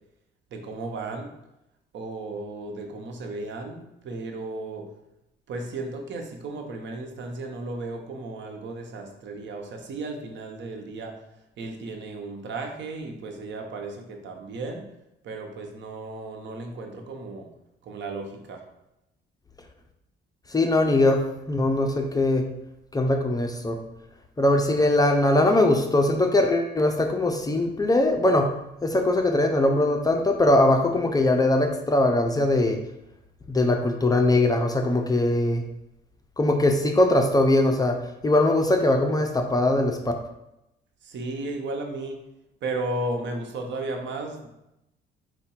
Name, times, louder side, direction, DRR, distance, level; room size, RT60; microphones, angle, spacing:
voice 1, 0.5-1.3 1.9-4.9 5.5-11.2 11.6-14.9 15.2-17.5 17.8-18.6 41.0-42.2 42.6-44.5, right 2 dB, 65° right, 3 dB, 0.8 m, -34 dB
voice 2, 20.5-22.5 22.9-23.8 24.4-28.5 28.8-32.8 33.5-35.6 36.4-40.0, left 1 dB, 20° left, 4 dB, 0.5 m, -21 dB
4.6 x 2.2 x 4.3 m, 0.88 s
cardioid pair, 90°, 20 cm